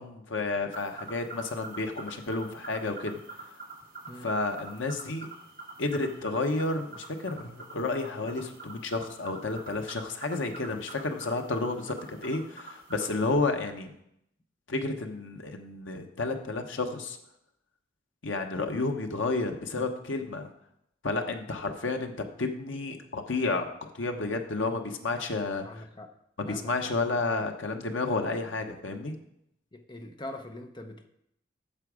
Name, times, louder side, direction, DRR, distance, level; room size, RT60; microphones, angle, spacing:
voice 1, 0.0-3.2 4.2-5.3 5.8-13.9 14.7-17.2 18.2-20.5 21.0-25.8 26.4-29.1, left 3 dB, 85° left, 5 dB, 1.0 m, -31 dB
sound 1, 0.7-13.3, right 2 dB, 50° right, 2.1 m, -46 dB
voice 2, 25.6-26.1 26.5-26.9 29.7-31.1, left 1 dB, 25° left, 5 dB, 0.8 m, -43 dB
8.8 x 7.1 x 4.9 m, 0.77 s
head